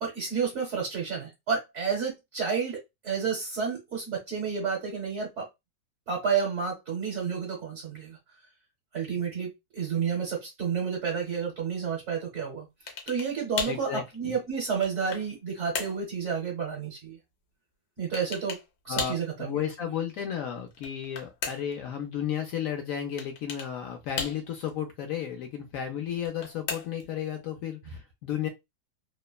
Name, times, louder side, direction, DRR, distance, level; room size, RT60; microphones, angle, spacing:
voice 1, 0.0-5.5 6.1-8.2 8.9-12.7 13.1-17.2 18.0-18.6 18.8-19.6, right 6 dB, 55° right, 1.1 m, -30 dB
sound 1, 12.9-13.3 13.6-13.9 14.5-15.3 15.7-16.0 18.1-18.7 19.0-19.3 20.7-21.8 23.2-23.7 24.2-24.7 26.1-27.1, left 5 dB, 90° left, 1.3 m, -35 dB
voice 2, 13.7-14.4 18.9-28.5, left 9 dB, 70° left, 0.8 m, -33 dB
3.0 x 2.1 x 2.3 m
omnidirectional pair, 1.7 m